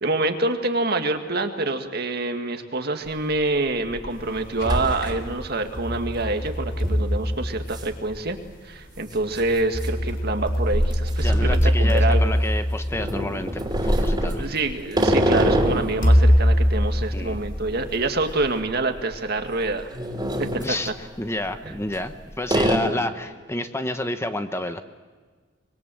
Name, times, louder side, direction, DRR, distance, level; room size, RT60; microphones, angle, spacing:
voice 1, 0.0-8.4 8.6-12.3 14.4-19.9 20.4-20.9 21.6-21.7, right 2 dB, 55° right, 6 dB, 1.9 m, -26 dB
sound 1, 3.1-3.2 3.7-4.1 4.4-5.4 5.8-5.9 6.8-7.1 7.7-7.9 8.2-8.3 9.2-12.3 12.9-15.9 16.3-18.7 19.0-19.2 19.7-20.7 21.6-22.1 22.5-22.8, equal, 20° right, 3.3 m, -25 dB
sound 2, 4.3-5.2 5.8-8.1 9.3-13.7 14.6-14.7 16.0-17.9, equal, 70° left, 3.5 m, -22 dB
voice 2, 11.2-14.5 17.1-17.4 20.6-20.9 21.2-24.8, left 1 dB, 15° left, 8 dB, 1.0 m, -29 dB
25.5 x 21.5 x 7.7 m, 1.5 s
head